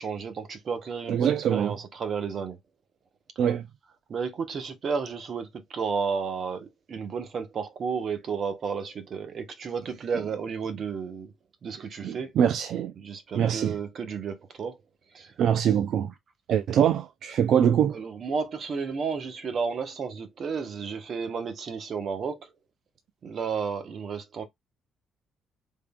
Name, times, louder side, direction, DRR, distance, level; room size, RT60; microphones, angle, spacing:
voice 1, 0.0-2.6 4.1-11.3 11.6-12.3 13.0-14.8 15.1-15.3 17.9-22.5 23.2-24.4, right 5 dB, 55° right, 1.0 m, -32 dB
voice 2, 1.1-1.8 3.4-3.6 12.0-12.9 13.3-13.8 15.4-16.1 16.5-18.0, right 9 dB, 70° right, 0.3 m, -23 dB
3.7 x 3.3 x 2.3 m
cardioid pair, 90°, 0 cm